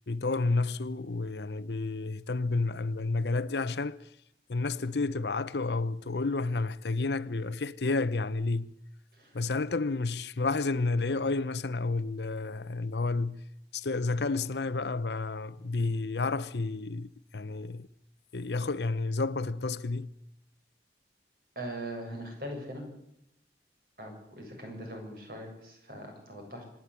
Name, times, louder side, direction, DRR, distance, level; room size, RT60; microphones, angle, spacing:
voice 1, 0.1-4.0 4.5-8.7 9.3-13.4 13.7-17.9 18.3-20.1, left 3 dB, 75° left, 0.8 m, -30 dB
voice 2, 21.6-22.8 24.0-26.6, right 1 dB, 55° right, 7.6 m, -41 dB
26.0 x 11.0 x 9.6 m
head